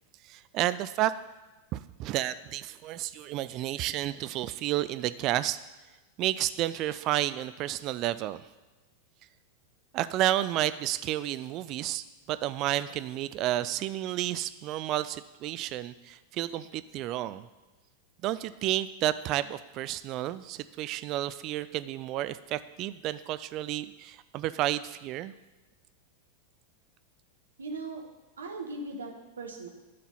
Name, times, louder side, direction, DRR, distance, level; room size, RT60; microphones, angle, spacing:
voice 1, 0.3-1.1 1.7-5.6 6.2-8.4 9.9-17.5 18.2-25.3, right 14 dB, 40° right, 14 dB, 0.3 m, -31 dB
voice 2, 27.6-28.0 28.4-29.7, right 3 dB, 70° right, 2 dB, 1.4 m, -38 dB
10.5 x 5.8 x 5.6 m, 1.1 s
figure-of-eight pair, 90°, 0 cm